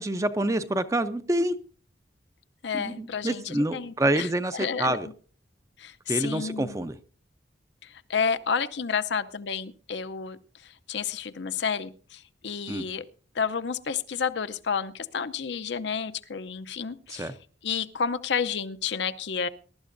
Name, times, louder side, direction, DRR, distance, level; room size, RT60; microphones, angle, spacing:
voice 1, 0.0-1.5 2.7-5.1 6.1-7.0 12.7-12.9 17.1-17.3, right 1 dB, 15° right, 0.5 m, -27 dB
voice 2, 2.6-5.1 5.8-6.8 8.1-10.4 10.9-13.0 13.4-17.3 17.6-19.5, left 6 dB, 70° left, 0.6 m, -30 dB
21.5 x 12.0 x 2.6 m
head